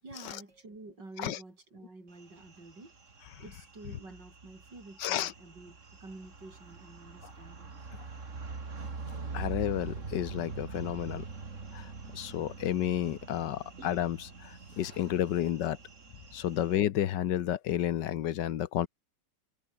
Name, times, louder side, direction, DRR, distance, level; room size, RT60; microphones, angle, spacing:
voice 1, 0.0-7.7, right 2 dB, 80° right, 7.1 m, -49 dB
sound 1, 2.2-16.8, right 4 dB, 45° right, 2.7 m, -44 dB
voice 2, 5.0-5.3 7.9-8.0 9.3-11.3 11.7-15.8 16.3-18.9, left 11 dB, 80° left, 1.6 m, -31 dB
omnidirectional pair, 1.9 m